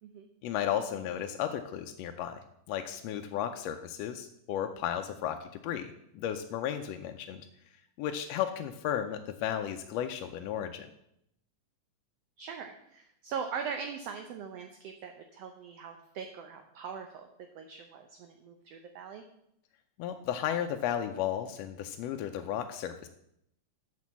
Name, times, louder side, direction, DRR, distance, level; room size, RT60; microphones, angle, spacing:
voice 1, 0.4-2.4 2.7-7.4 8.0-10.9 20.0-23.1, left 10 dB, 80° left, 6 dB, 1.5 m, -34 dB
voice 2, 12.4-17.3 17.5-19.2, right 6 dB, 70° right, 5 dB, 1.6 m, -41 dB
6.6 x 6.3 x 7.2 m, 0.76 s
omnidirectional pair, 3.4 m